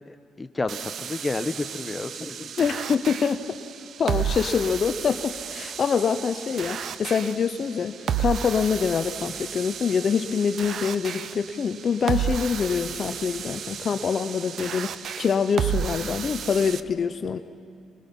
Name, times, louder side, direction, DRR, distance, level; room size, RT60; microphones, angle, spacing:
voice 1, 0.1-2.5, left 3 dB, 20° left, 9 dB, 0.9 m, -31 dB
sound 1, 0.7-16.8, right 8 dB, 65° right, 0.6 m, -33 dB
voice 2, 2.6-3.4 4.0-17.4, left 6 dB, 50° left, 9 dB, 0.7 m, -25 dB
26.5 x 20.5 x 5.4 m, 2.3 s
cardioid pair, 90°, 0 cm